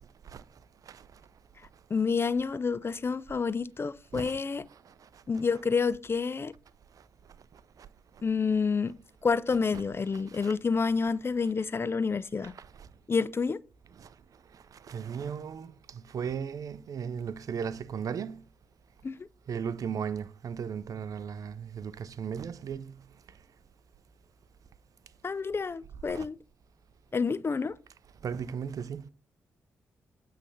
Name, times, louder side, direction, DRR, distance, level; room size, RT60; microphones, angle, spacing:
voice 1, 1.9-4.6 5.3-6.5 8.2-9.0 9.2-12.5 13.1-13.6 19.0-19.3 25.2-26.4 27.1-27.8, left 5 dB, 35° left, 0.4 m, -29 dB
voice 2, 14.9-15.7 16.1-18.3 19.5-22.9 28.2-29.1, right 7 dB, 60° right, 0.5 m, -35 dB
8.3 x 3.3 x 5.6 m
hypercardioid pair, 45°, 7 cm